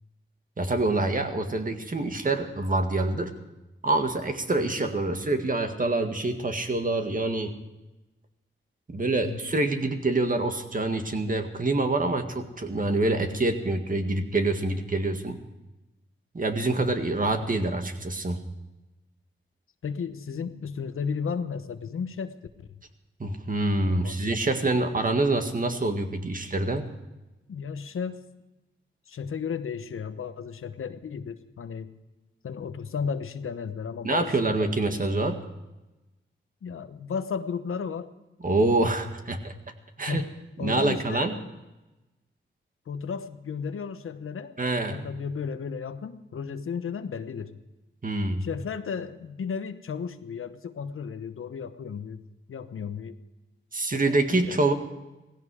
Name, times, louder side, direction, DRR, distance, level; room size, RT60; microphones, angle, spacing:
voice 1, 0.6-3.3 3.8-7.5 8.9-15.4 16.3-18.4 23.2-26.9 34.0-35.4 38.4-39.5 40.0-40.2 40.6-41.4 44.6-45.0 48.0-48.4 53.7-54.7, right 2 dB, 40° right, 6 dB, 1.9 m, -26 dB
voice 2, 9.2-9.7 16.8-16.9 17.4-17.5 19.8-22.7 23.8-24.2 24.7-24.9 27.5-28.2 29.1-31.9 32.4-34.5 36.6-38.1 40.1-40.3 40.6-41.5 42.9-44.6 44.9-47.6 48.4-52.2 52.5-53.2 53.9-54.0 54.3-54.6, left 6 dB, 85° left, 10 dB, 1.0 m, -34 dB
17.0 x 16.0 x 4.9 m, 1.0 s
wide cardioid pair, 75°, 21 cm